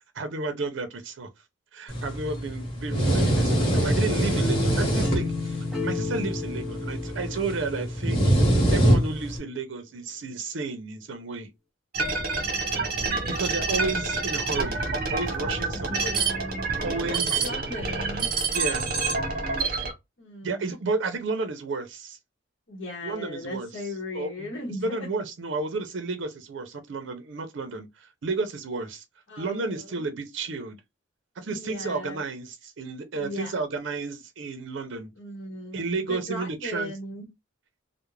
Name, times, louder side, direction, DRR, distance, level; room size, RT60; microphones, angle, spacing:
voice 1, 0.1-1.3 1.7-8.3 8.7-11.5 13.3-14.8 15.1-16.2 16.8-17.3 18.5-18.9 20.4-22.2 23.0-23.7 24.1-24.5 24.8-29.0 29.4-30.8 31.4-35.1 35.7-36.9, right 3 dB, 65° right, 0.5 m, -32 dB
sound 1, 1.9-9.4, right 1 dB, 30° left, 1.1 m, -24 dB
sound 2, 3.7-8.6, left 3 dB, ahead, 0.5 m, -33 dB
sound 3, 11.9-19.9, right 4 dB, 50° right, 0.9 m, -27 dB
voice 2, 12.7-13.3 15.9-18.3 20.2-20.7 22.7-25.1 29.3-30.0 31.5-32.2 33.1-33.6 35.2-35.8 36.1-37.3, left 1 dB, 65° left, 0.8 m, -38 dB
2.4 x 2.0 x 3.0 m
head